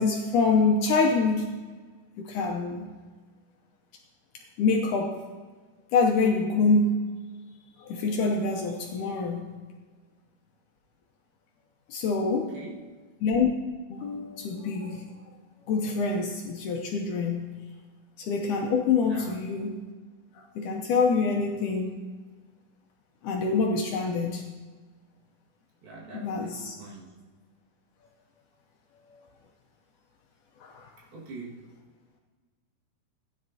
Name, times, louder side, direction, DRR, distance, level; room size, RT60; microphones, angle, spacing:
voice 1, 0.0-1.5 2.2-2.9 4.6-5.2 5.9-7.0 7.8-9.5 11.9-12.6 13.2-13.5 13.9-15.1 15.7-17.6 18.2-19.7 20.3-22.0 23.2-24.4 26.1-26.7 29.1-29.2 30.6-30.9, left 4 dB, 75° left, 1 dB, 1.9 m, -26 dB
voice 2, 19.0-19.4 25.8-27.0 31.1-31.6, right 3 dB, 80° right, -4 dB, 3.7 m, -43 dB
15.0 x 10.0 x 2.7 m, 1.5 s
omnidirectional pair, 4.2 m